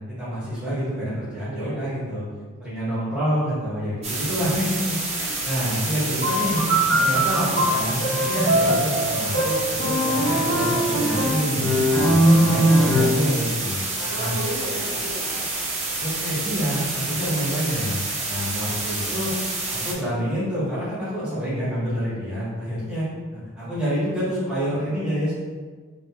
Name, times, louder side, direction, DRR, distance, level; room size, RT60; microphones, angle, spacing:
voice 1, 0.2-2.2 2.6-13.8 14.1-14.3 16.0-18.0 18.2-19.3 19.7-23.1 23.3-25.4, equal, 5° right, -12 dB, 1.3 m, -27 dB
voice 2, 1.5-1.8 5.5-5.7 11.8-12.3 13.9-15.4, right 1 dB, 75° right, -9 dB, 1.1 m, -34 dB
sound 1, 4.0-19.9, right 2 dB, 30° right, 0.6 m, -28 dB
sound 2, 6.2-13.3, equal, 65° left, 1.4 m, -21 dB
3.0 x 3.0 x 3.0 m, 1.5 s
head